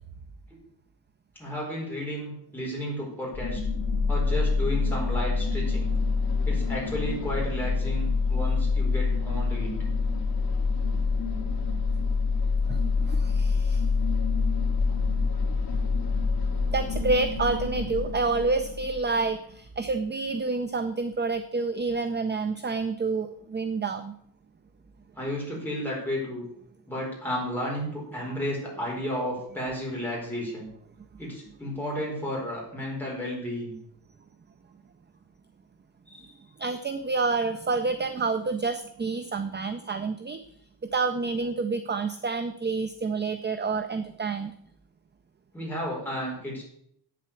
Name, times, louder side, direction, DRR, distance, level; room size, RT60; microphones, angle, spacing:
voice 1, 1.4-3.6 4.1-5.9 6.4-9.7 25.2-26.4 26.9-30.7 31.2-33.8 45.5-46.6, equal, 5° left, -5 dB, 4.5 m, -32 dB
sound 1, 3.3-19.3, left 4 dB, 60° left, 2.1 m, -26 dB
voice 2, 12.7-13.9 16.7-24.1 36.1-40.4 40.9-44.5, right 3 dB, 25° right, 9 dB, 0.5 m, -28 dB
8.6 x 7.6 x 6.9 m, 0.69 s
wide cardioid pair, 175°, 41 cm